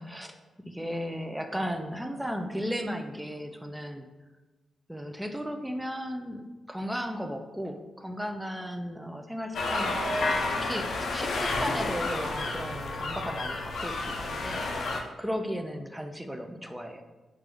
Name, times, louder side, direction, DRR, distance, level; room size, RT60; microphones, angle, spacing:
voice 1, 0.0-4.1 4.9-17.0, equal, 5° right, 5 dB, 0.4 m, -35 dB
sound 1, 9.5-15.0, left 2 dB, 70° left, 0.4 m, -30 dB
3.3 x 2.5 x 3.5 m, 1.2 s
cardioid pair, 75°, 0 cm